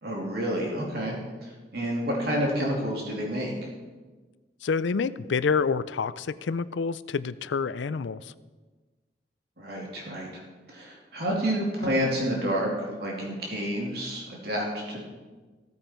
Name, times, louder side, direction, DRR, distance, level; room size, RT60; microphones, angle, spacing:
voice 1, 0.0-1.2 1.7-3.5 9.6-10.3 10.7-12.7 13.0-15.0, equal, 60° right, -2 dB, 2.9 m, -29 dB
voice 2, 4.6-8.3, left 5 dB, 85° left, 16 dB, 0.5 m, -28 dB
15.5 x 9.4 x 4.5 m, 1.3 s
head